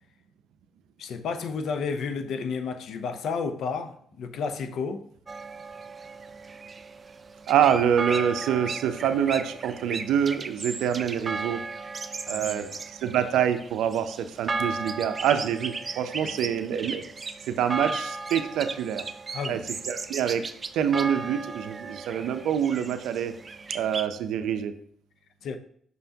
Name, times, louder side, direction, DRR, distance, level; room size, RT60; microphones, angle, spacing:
voice 1, 1.0-5.0 12.3-12.6 16.2-16.5 19.3-19.6 25.4-25.6, left 5 dB, 70° left, 0.6 m, -32 dB
sound 1, 5.3-24.1, right 4 dB, 35° right, 0.4 m, -36 dB
voice 2, 7.5-11.6 12.3-12.7 12.9-17.0 17.5-19.0 19.5-19.6 19.9-20.4 20.7-23.3 23.7-24.7, right 9 dB, 85° right, 0.5 m, -26 dB
6.0 x 5.5 x 2.8 m
cardioid pair, 90°, 0 cm